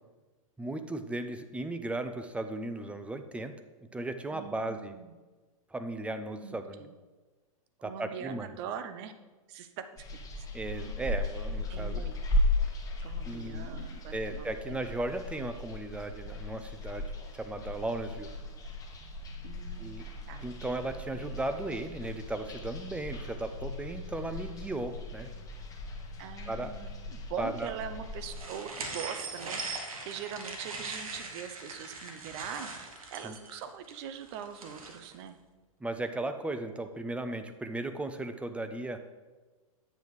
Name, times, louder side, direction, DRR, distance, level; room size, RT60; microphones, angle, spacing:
voice 1, 0.6-3.5 3.9-4.9 5.7-6.8 7.8-8.5 10.5-12.0 13.3-13.7 14.1-17.1 17.3-18.3 19.8-20.0 20.4-25.3 26.5-26.7 27.4-27.7 33.2-33.3 35.8-39.0, right 2 dB, 5° right, 8 dB, 0.5 m, -36 dB
voice 2, 4.3-5.1 6.4-6.9 7.8-9.1 9.5-10.0 11.7-12.1 13.0-14.8 19.4-20.0 20.3-20.4 26.2-35.4, right 8 dB, 45° right, 9 dB, 0.8 m, -42 dB
sound 1, 10.0-28.4, left 2 dB, 20° left, 1.2 m, -36 dB
sound 2, 28.3-35.1, right 3 dB, 75° right, 1.4 m, -41 dB
9.1 x 7.6 x 3.2 m, 1.3 s
hypercardioid pair, 110°, 18 cm